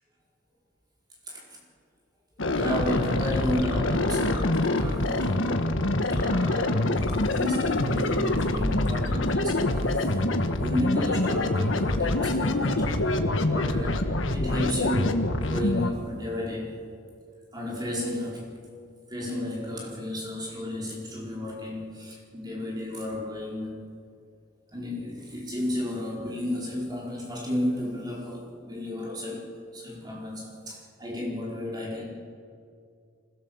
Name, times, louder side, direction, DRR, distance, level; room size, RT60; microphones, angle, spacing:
sound 1, 2.4-15.9, left 2 dB, 90° left, 1.4 m, -25 dB
voice 1, 2.5-7.1 7.3-13.0 13.5-16.7 17.5-18.5 19.1-23.8 24.7-32.1, left 1 dB, 20° right, -3 dB, 4.6 m, -33 dB
25.5 x 17.0 x 7.2 m, 2.3 s
head